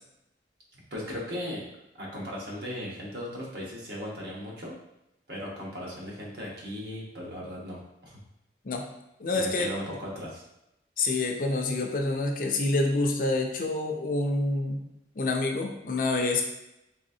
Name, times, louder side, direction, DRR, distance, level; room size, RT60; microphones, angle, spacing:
voice 1, 0.7-1.7 2.0-4.7 5.3-8.2 9.3-10.4, equal, 65° right, -4 dB, 1.1 m, -37 dB
voice 2, 9.2-9.7 11.0-14.8 15.2-16.5, left 2 dB, 50° left, 2 dB, 0.5 m, -27 dB
4.1 x 3.4 x 2.7 m, 0.88 s
head